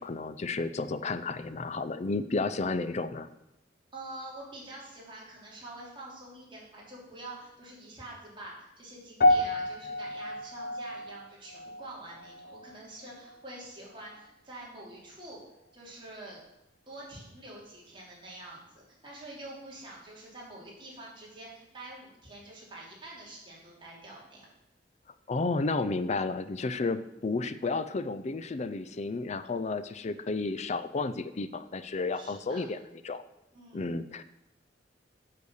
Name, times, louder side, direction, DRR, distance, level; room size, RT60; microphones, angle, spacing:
voice 1, 0.0-3.3 25.3-32.8 33.0-33.2 33.7-34.2, left 3 dB, 40° left, 13 dB, 0.4 m, -32 dB
voice 2, 3.9-15.4 15.7-16.4 16.9-24.5 32.1-32.6 33.5-33.8, right 1 dB, 30° right, -5 dB, 3.2 m, -46 dB
sound 1, 9.2-13.6 13.9-14.2 14.9-15.0, left 1 dB, 60° left, 1.0 m, -30 dB
8.3 x 6.8 x 6.4 m, 0.89 s
head